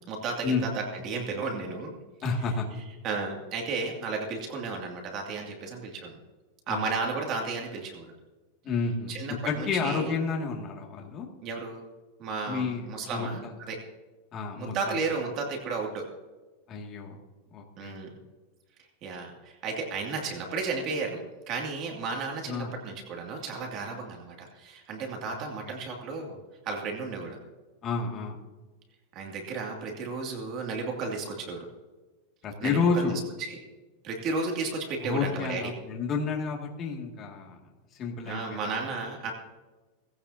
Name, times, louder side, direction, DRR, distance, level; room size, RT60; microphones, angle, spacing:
voice 1, 0.0-2.0 3.0-6.2 6.7-8.1 9.1-10.1 11.4-11.9 12.2-13.8 14.6-16.1 17.8-18.1 19.0-26.4 26.6-27.4 29.1-31.6 32.6-33.1 33.4-33.6 34.0-35.6 38.2-39.3, right 4 dB, 35° right, 0 dB, 2.5 m, -33 dB
voice 2, 2.2-2.7 6.7-6.8 8.6-9.1 9.4-11.3 12.5-12.9 13.1-13.5 14.3-15.0 16.7-17.2 17.5-18.0 22.5-22.7 25.3-25.4 25.7-25.8 27.8-28.4 32.4-33.2 35.0-37.6 37.9-38.8 39.2-39.3, left 4 dB, 25° left, 0 dB, 2.3 m, -30 dB
18.0 x 16.0 x 2.8 m, 1.2 s
supercardioid pair, 165°, 0 cm